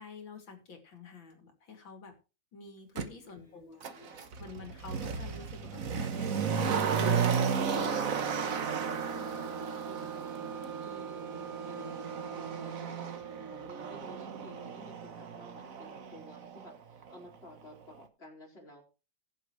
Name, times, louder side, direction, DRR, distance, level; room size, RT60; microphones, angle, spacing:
voice 1, 0.0-2.1 2.5-3.8 4.1-8.1, left 4 dB, 90° left, 4 dB, 3.4 m, -49 dB
Motor vehicle (road), 3.0-3.1 3.8-16.7 17.0-17.1, right 6 dB, 50° right, 1.4 m, -34 dB
voice 2, 3.3-4.3 9.1-18.8, left 1 dB, 30° left, -1 dB, 4.7 m, -53 dB
Wind instrument woodwind instrument, 7.4-15.2, right 11 dB, 80° right, 3.1 m, -44 dB
20.5 x 7.4 x 3.2 m, 0.32 s
omnidirectional pair, 2.0 m